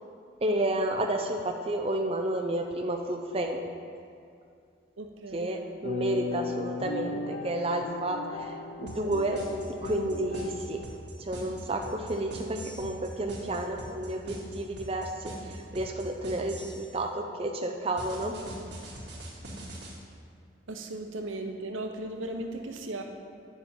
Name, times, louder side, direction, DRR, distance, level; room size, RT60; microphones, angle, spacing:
voice 1, 0.4-3.6 5.3-8.5 8.8-9.4 9.8-10.8 11.2-18.4, right 1 dB, 30° right, 2 dB, 0.5 m, -31 dB
voice 2, 5.0-5.5 20.7-23.0, right 2 dB, 85° right, 4 dB, 0.8 m, -36 dB
sound 1, 5.8-10.8, left 3 dB, 55° left, 0.5 m, -37 dB
sound 2, 8.9-16.9 18.0-19.9, right 1 dB, 60° right, 2.3 m, -42 dB
10.5 x 7.0 x 4.3 m, 2.4 s
head